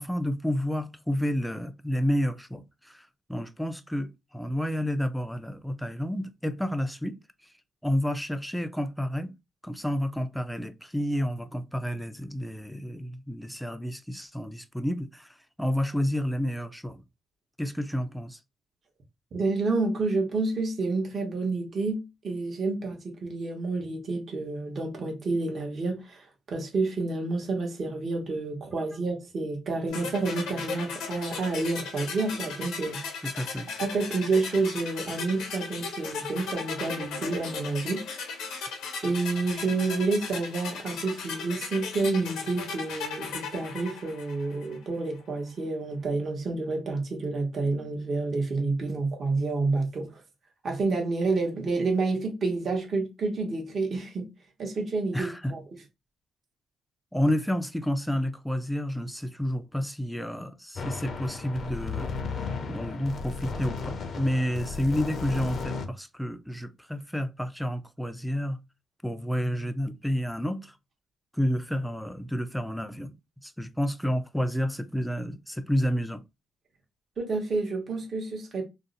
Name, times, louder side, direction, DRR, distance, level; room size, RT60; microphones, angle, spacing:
voice 1, 0.0-7.2 7.8-9.3 9.6-15.3 15.6-17.0 17.6-18.4 33.2-33.7 55.1-55.5 57.1-68.6 69.0-70.8 71.3-73.2 73.4-76.2, equal, ahead, 0.4 m, -30 dB
voice 2, 19.3-33.2 33.8-38.0 39.0-50.2 50.6-54.3 54.6-55.6 77.2-78.6, right 3 dB, 50° right, 1.0 m, -29 dB
sound 1, 29.9-44.8, left 5 dB, 90° left, 0.8 m, -37 dB
sound 2, 60.8-65.9, left 4 dB, 50° left, 0.5 m, -34 dB
2.6 x 2.0 x 3.9 m
cardioid pair, 90°, 0 cm